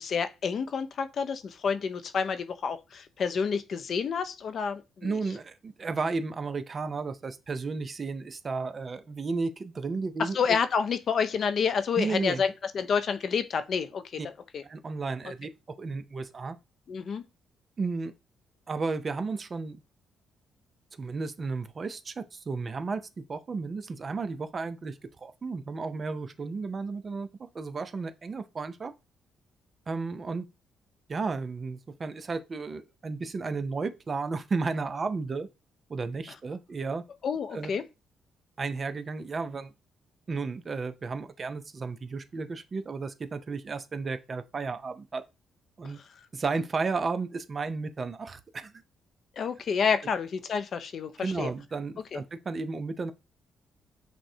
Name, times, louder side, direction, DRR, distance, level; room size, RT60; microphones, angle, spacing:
voice 1, 0.0-5.1 10.2-14.6 16.9-17.2 37.2-37.8 49.4-51.5 52.1-52.2, left 6 dB, 55° left, 0.4 m, -29 dB
voice 2, 5.0-10.6 12.0-12.4 14.2-14.3 14.6-15.5 15.8-16.6 17.8-18.1 18.7-19.8 20.9-27.3 27.5-28.9 29.9-30.5 31.1-35.5 35.9-37.0 37.5-37.7 38.6-39.7 40.3-45.2 45.8-46.0 46.3-48.7 51.2-53.1, right 4 dB, 40° right, 0.4 m, -33 dB
6.0 x 2.1 x 2.7 m
cardioid pair, 90°, 0 cm